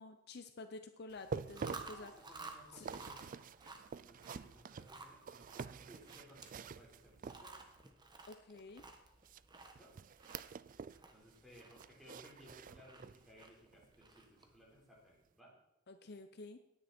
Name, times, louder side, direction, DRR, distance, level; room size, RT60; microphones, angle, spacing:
voice 1, 0.0-2.4 2.7-2.9 8.3-8.9 15.9-16.6, left 3 dB, 55° left, 9 dB, 0.7 m, -51 dB
sound 1, 1.1-7.8 9.2-11.0 11.3-13.3 13.7-13.9 14.4-14.5, right 5 dB, 40° right, 0.4 m, -48 dB
Chewing mastication, 1.4-14.6, right 3 dB, 20° right, 1.4 m, -55 dB
voice 2, 1.9-3.4 4.0-7.6 9.5-9.9 11.1-15.5, equal, ahead, -4 dB, 4.5 m, -61 dB
18.0 x 10.0 x 4.4 m, 0.86 s
head